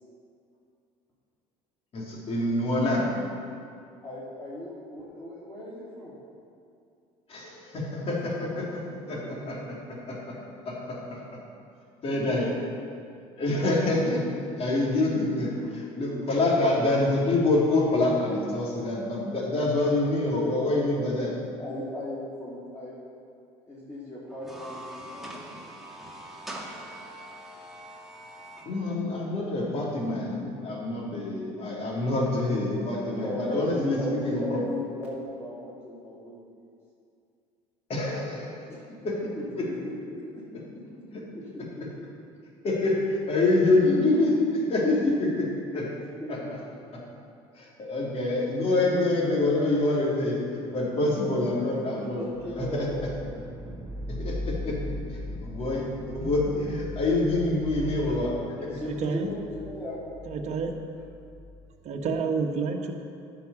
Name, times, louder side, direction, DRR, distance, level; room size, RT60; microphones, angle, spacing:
voice 1, 1.9-3.1 7.3-8.8 9.1-9.6 9.9-10.3 10.6-11.0 12.0-12.5 13.4-14.2 14.6-21.3 28.6-34.0 34.2-34.6 37.9-38.7 39.0-39.2 39.6-39.7 42.6-45.9 47.6-50.4 50.7-52.2 52.5-52.9 54.2-54.8 55.4-58.3, left 2 dB, 45° left, -3 dB, 3.3 m, -26 dB
voice 2, 4.0-6.1 12.1-12.4 14.0-14.1 15.6-15.7 21.6-23.0 23.7-25.4 30.6-30.7 31.7-31.8 33.2-36.7 38.7-39.1 39.3-39.8 40.1-40.4 40.7-40.8 41.3-41.6 46.2-46.5 51.7-53.0 57.7-58.1 58.4-60.3, left 1 dB, 20° left, -9 dB, 3.3 m, -37 dB
sound 1, 24.3-28.7, right 1 dB, ahead, 2.0 m, -42 dB
sound 2, 52.3-62.2, left 1 dB, 20° right, 0.7 m, -39 dB
voice 3, 58.8-59.3 60.3-60.7 61.8-62.9, right 5 dB, 50° right, 3 dB, 1.4 m, -29 dB
10.0 x 6.1 x 8.4 m, 2.4 s
supercardioid pair, 85°, 14 cm